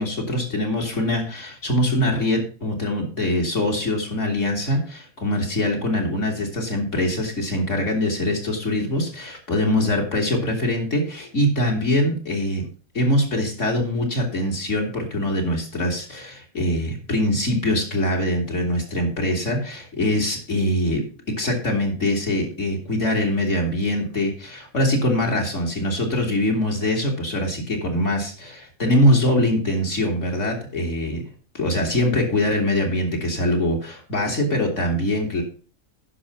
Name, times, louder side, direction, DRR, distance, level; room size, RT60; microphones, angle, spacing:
voice 1, 0.0-12.6 12.9-21.0 21.4-31.2 31.5-35.4, left 1 dB, 60° left, 0 dB, 3.1 m, -23 dB
10.0 x 6.0 x 5.7 m, 0.38 s
omnidirectional pair, 1.4 m